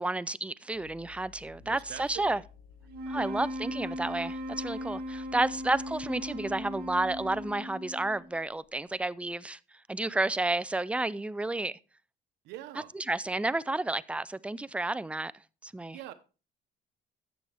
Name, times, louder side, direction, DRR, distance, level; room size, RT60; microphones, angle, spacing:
voice 1, 0.0-2.4 3.1-9.6 9.9-11.8 13.1-15.3 15.6-16.0, right 2 dB, 5° right, 0.4 m, -31 dB
sound 1, 0.7-7.6, left 6 dB, 55° left, 1.2 m, -54 dB
voice 2, 1.6-2.4 3.1-3.4 12.4-12.9 15.9-16.1, right 13 dB, 90° right, 0.9 m, -44 dB
sound 2, 2.9-8.3, left 1 dB, 70° right, 1.6 m, -38 dB
13.5 x 8.4 x 3.4 m
cardioid pair, 110°, 17 cm